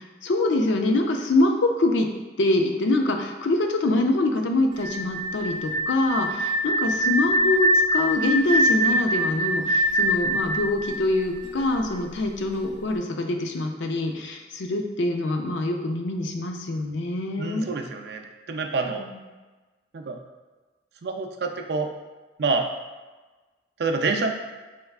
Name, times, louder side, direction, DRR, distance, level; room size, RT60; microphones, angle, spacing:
voice 1, 0.0-2.1 2.4-17.7 18.9-19.2, left 2 dB, 90° left, 4 dB, 0.5 m, -25 dB
sound 1, 4.7-11.6, right 1 dB, 25° right, 0.7 m, -23 dB
voice 2, 17.4-19.0 19.9-20.2 21.0-21.9 22.4-22.6 23.8-24.3, right 4 dB, 60° right, 4 dB, 0.4 m, -27 dB
4.4 x 3.4 x 2.3 m, 1.2 s
head